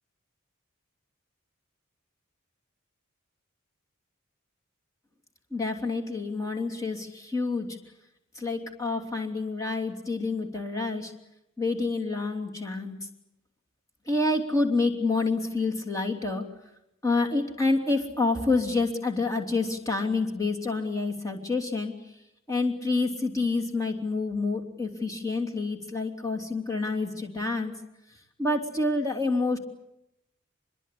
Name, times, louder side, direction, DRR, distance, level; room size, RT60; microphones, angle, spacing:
voice 1, 5.5-7.7 8.3-11.1 11.6-13.0 14.1-16.4 17.0-21.9 22.5-27.7 28.4-29.6, left 3 dB, 15° left, 2 dB, 3.1 m, -28 dB
25.5 x 22.0 x 8.5 m, 0.84 s
head